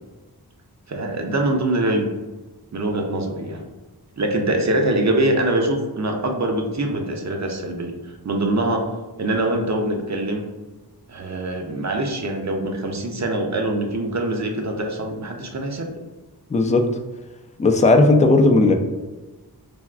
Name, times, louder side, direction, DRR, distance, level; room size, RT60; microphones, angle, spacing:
voice 1, 0.9-2.1 2.7-3.6 4.2-8.9 9.2-10.4 11.1-16.0, right 1 dB, 45° right, 2 dB, 0.5 m, -23 dB
voice 2, 16.5-16.9 17.6-18.7, left 2 dB, 20° left, 5 dB, 0.3 m, -15 dB
3.4 x 2.2 x 2.4 m, 1.2 s
cardioid pair, 40°, 40 cm